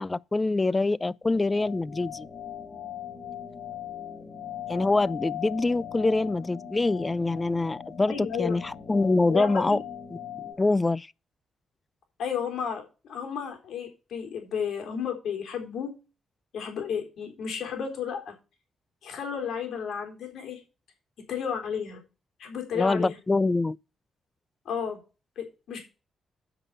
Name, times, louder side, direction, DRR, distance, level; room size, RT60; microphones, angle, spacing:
voice 1, 0.0-2.3 4.7-9.8 10.6-11.1 22.7-23.8, left 3 dB, 30° left, 0.5 m, -25 dB
sound 1, 1.2-10.5, left 9 dB, 50° left, 4.0 m, -40 dB
voice 2, 8.1-8.6 9.3-9.8 12.2-12.8 13.1-15.9 16.5-18.3 19.0-20.6 21.3-22.0 22.4-23.2 24.7-25.0 25.4-25.8, left 7 dB, 70° left, 4.0 m, -32 dB
9.0 x 6.1 x 5.6 m
hypercardioid pair, 45°, 0 cm